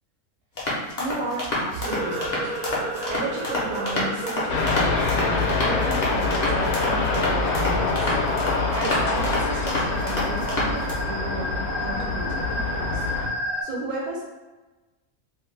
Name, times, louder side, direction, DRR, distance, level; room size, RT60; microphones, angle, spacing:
sound 1, 0.6-10.9, left 1 dB, 45° left, 0.6 m, -28 dB
voice 1, 1.0-2.5 3.1-8.1 8.7-13.0 13.6-14.2, right 2 dB, 75° right, -3 dB, 1.0 m, -33 dB
sound 2, 1.8-13.6, equal, 60° right, 0.6 m, -34 dB
sound 3, 4.5-13.3, left 3 dB, 75° left, 1.0 m, -25 dB
2.6 x 2.1 x 3.1 m, 1.2 s
omnidirectional pair, 1.6 m